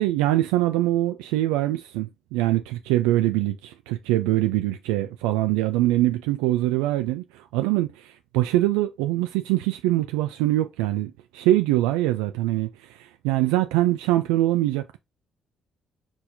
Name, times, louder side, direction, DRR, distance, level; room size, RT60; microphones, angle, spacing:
voice 1, 0.0-15.0, right 15 dB, 90° right, 0.3 m, -23 dB
4.5 x 4.2 x 2.6 m
supercardioid pair, 65°, 0 cm